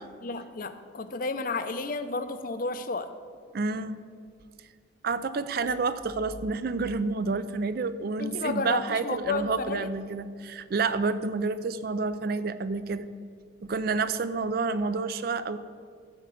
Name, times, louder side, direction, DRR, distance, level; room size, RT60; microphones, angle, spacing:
voice 1, 0.2-3.1 8.2-9.9, left 3 dB, 45° left, 10 dB, 0.6 m, -32 dB
voice 2, 3.5-4.0 5.0-13.1 13.7-15.6, right 4 dB, 50° right, 13 dB, 0.4 m, -29 dB
13.0 x 5.1 x 7.6 m, 2.1 s
head